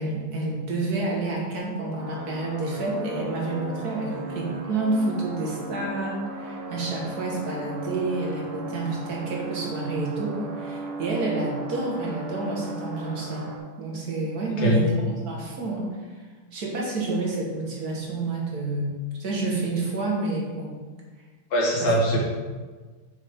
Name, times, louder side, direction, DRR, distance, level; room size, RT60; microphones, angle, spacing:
voice 1, 0.0-13.5 13.8-15.9 16.5-18.9 19.2-20.8 21.8-21.9, right 2 dB, 45° right, -2 dB, 1.9 m, -29 dB
sound 1, 2.0-13.6, right 2 dB, 85° right, 2.1 m, -36 dB
voice 2, 21.5-22.2, equal, 65° left, -4 dB, 2.5 m, -22 dB
7.7 x 6.4 x 3.7 m, 1.4 s
omnidirectional pair, 2.4 m